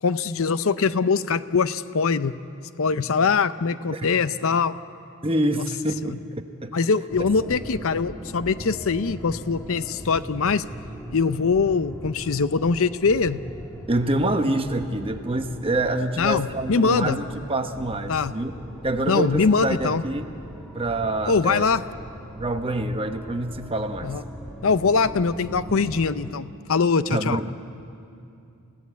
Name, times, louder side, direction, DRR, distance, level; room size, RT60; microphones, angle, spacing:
voice 1, 0.0-2.3 2.8-4.8 6.7-10.6 11.1-13.4 16.2-17.2 18.1-18.3 19.1-20.0 21.3-21.8 24.0-24.2 24.6-27.4, left 5 dB, 65° left, 13 dB, 0.6 m, -22 dB
voice 2, 5.2-6.2 6.6-6.8 7.2-7.3 13.9-18.5 18.8-20.3 20.7-21.6 22.4-24.1 27.1-27.5, right 1 dB, 25° right, 6 dB, 1.1 m, -26 dB
sound 1, 7.1-26.3, equal, 5° left, 1.9 m, -39 dB
29.5 x 16.5 x 8.3 m, 2.5 s
head